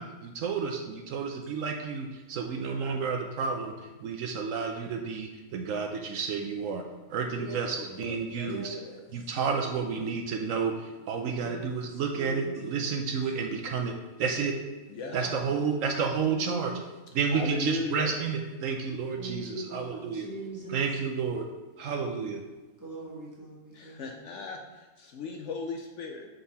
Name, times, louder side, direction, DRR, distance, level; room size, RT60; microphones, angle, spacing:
voice 1, 0.0-6.8 7.1-8.7 9.1-14.6 15.1-16.7 17.1-20.3 20.7-21.5 21.8-22.4, right 5 dB, 70° right, 3 dB, 0.9 m, -31 dB
voice 2, 7.3-7.7 8.4-9.3 11.2-13.0 15.1-15.6 16.0-16.8 19.2-20.9 22.8-24.2, right 2 dB, 15° right, -4 dB, 1.3 m, -42 dB
voice 3, 8.0-8.5 14.9-15.2 17.3-18.1 23.7-26.3, left 4 dB, 65° left, 2 dB, 0.8 m, -37 dB
6.8 x 3.8 x 4.1 m, 1.2 s
omnidirectional pair, 1.5 m